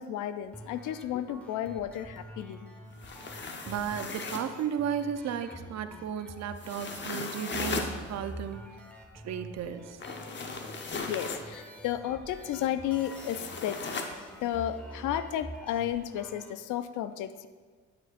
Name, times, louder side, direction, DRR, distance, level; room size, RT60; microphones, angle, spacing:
voice 1, 0.0-2.7 11.1-13.8 14.4-17.5, left 11 dB, 85° left, 12 dB, 0.5 m, -33 dB
sound 1, 0.5-16.5, right 1 dB, 5° left, 1.2 m, -47 dB
sound 2, 2.9-4.6 6.6-7.9 10.0-11.5 13.0-14.2, left 3 dB, 40° left, 0.9 m, -37 dB
voice 2, 3.7-8.6 9.2-10.0, right 8 dB, 60° right, 9 dB, 0.6 m, -34 dB
9.5 x 8.5 x 2.5 m, 1.5 s
cardioid pair, 90°, 30 cm